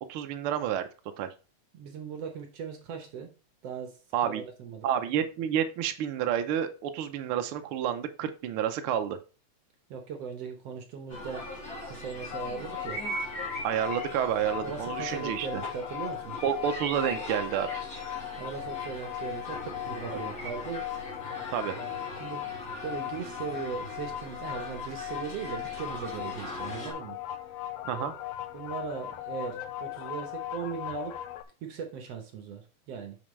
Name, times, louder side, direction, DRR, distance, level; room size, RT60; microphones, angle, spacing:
voice 1, 0.1-0.9 1.2-1.3 4.1-4.4 4.8-9.2 13.6-15.6 16.4-17.8 21.5-21.8 27.9-28.1, right 9 dB, 85° right, 7 dB, 1.2 m, -29 dB
voice 2, 1.7-3.3 3.6-4.9 9.9-11.5 11.8-13.0 14.6-16.4 18.4-20.9 21.8-21.9 22.2-22.5 22.8-27.6 27.8-31.2 31.6-33.2, right 6 dB, 65° right, 5 dB, 1.9 m, -39 dB
sound 1, 11.1-26.9, equal, 30° left, 4.2 m, -42 dB
sound 2, 11.2-12.5 12.8-14.3 16.7-18.2 20.4-20.5, right 2 dB, 55° left, 3.8 m, -39 dB
sound 3, 12.3-31.4, left 12 dB, 75° left, 1.6 m, -38 dB
8.7 x 6.2 x 3.2 m, 0.34 s
omnidirectional pair, 3.5 m